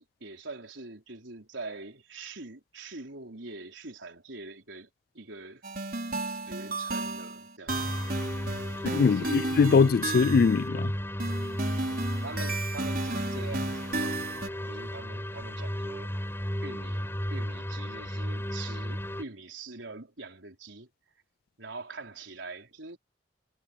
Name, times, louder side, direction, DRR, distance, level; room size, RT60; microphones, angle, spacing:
voice 1, 0.0-4.9 5.1-5.6 6.3-8.0 8.7-9.4 12.2-16.2 16.6-17.0 17.3-20.9 21.6-23.0, right 3 dB, 85° right, 4.2 m, -44 dB
sound 1, 5.6-10.6 11.2-14.5, right 2 dB, 50° right, 4.7 m, -34 dB
sound 2, 7.7-19.2, equal, 15° left, 4.5 m, -34 dB
voice 2, 8.8-10.9, left 5 dB, 55° left, 0.3 m, -22 dB
head